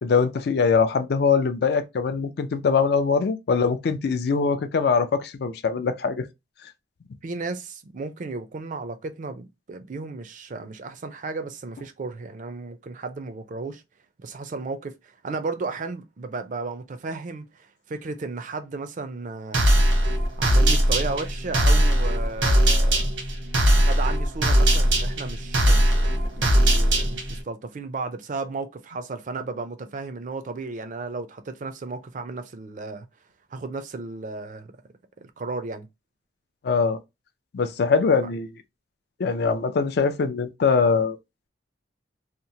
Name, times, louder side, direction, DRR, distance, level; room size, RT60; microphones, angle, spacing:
voice 1, 0.0-6.2 36.6-37.0 37.5-38.5 39.2-41.2, left 5 dB, 55° left, 0.4 m, -22 dB
voice 2, 7.2-13.8 14.2-19.7 20.4-23.1 23.8-33.1 33.5-34.7 35.2-35.9, right 3 dB, 45° right, 0.4 m, -34 dB
sound 1, 19.5-27.4, equal, 85° right, 0.9 m, -20 dB
2.9 x 2.0 x 2.6 m
head